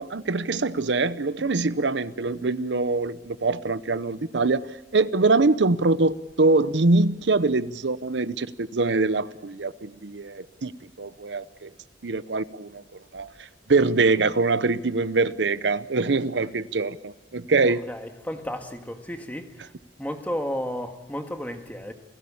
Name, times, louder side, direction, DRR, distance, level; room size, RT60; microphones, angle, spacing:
voice 1, 0.0-4.6 4.9-10.7 11.0-11.7 12.0-12.8 13.1-13.3 13.7-17.8, right 3 dB, 75° right, 0.8 m, -23 dB
voice 2, 17.9-19.7 20.0-21.9, equal, 10° left, 1.8 m, -33 dB
28.0 x 17.0 x 8.6 m
head